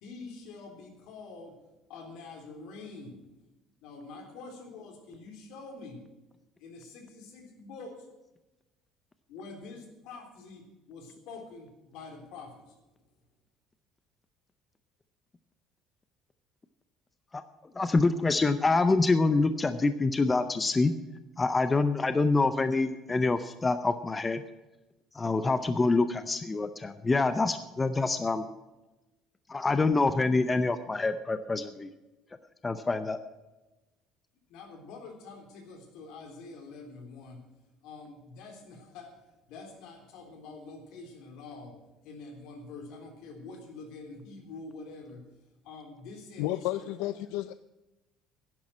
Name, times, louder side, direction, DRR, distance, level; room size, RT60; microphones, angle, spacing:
voice 1, 0.0-1.6 1.9-3.2 3.8-6.0 6.6-8.1 9.3-12.8 34.5-37.5 37.8-45.3 45.6-47.2, left 3 dB, 70° left, 3 dB, 3.5 m, -46 dB
voice 2, 17.8-20.9 21.4-24.4 25.1-28.4 29.5-31.9 32.6-33.2, left 3 dB, 15° left, 10 dB, 0.5 m, -26 dB
voice 3, 46.4-47.5, left 15 dB, 90° left, 14 dB, 0.4 m, -32 dB
11.0 x 10.5 x 7.4 m, 1.1 s
cardioid pair, 165°, 0 cm